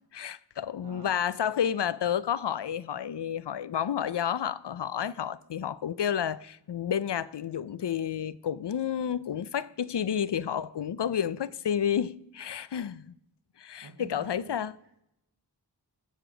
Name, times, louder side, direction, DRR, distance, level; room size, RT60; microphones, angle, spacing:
voice 1, 0.1-13.0 13.6-14.7, left 9 dB, 80° left, 0.6 m, -30 dB
voice 2, 0.8-1.2 13.8-15.0, right 4 dB, 80° right, 1.1 m, -49 dB
16.0 x 6.7 x 6.1 m
wide cardioid pair, 50°, 41 cm